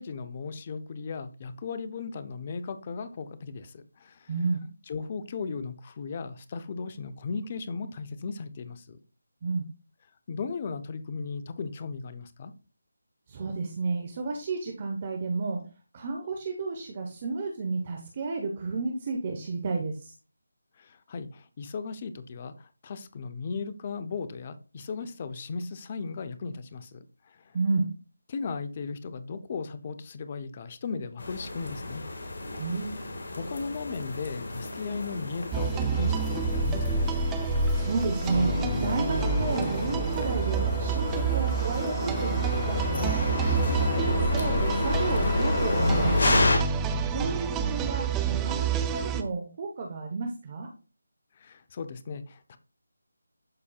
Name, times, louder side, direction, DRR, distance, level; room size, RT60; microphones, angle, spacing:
voice 1, 0.0-4.3 4.9-9.0 10.3-12.5 20.8-27.0 27.5-27.6 28.3-32.0 33.3-37.1 51.4-52.6, left 4 dB, 30° left, 11 dB, 0.7 m, -36 dB
voice 2, 4.3-4.7 9.4-9.7 13.3-15.6 15.9-20.1 27.5-27.9 32.5-32.9 37.7-46.4 47.1-50.7, right 3 dB, 30° right, 2 dB, 1.1 m, -32 dB
sound 1, 31.2-46.6, left 2 dB, 60° left, 1.8 m, -30 dB
sound 2, 35.5-49.2, right 5 dB, 10° right, 0.5 m, -28 dB
12.0 x 4.2 x 2.4 m, 0.34 s
figure-of-eight pair, 160°, 0 cm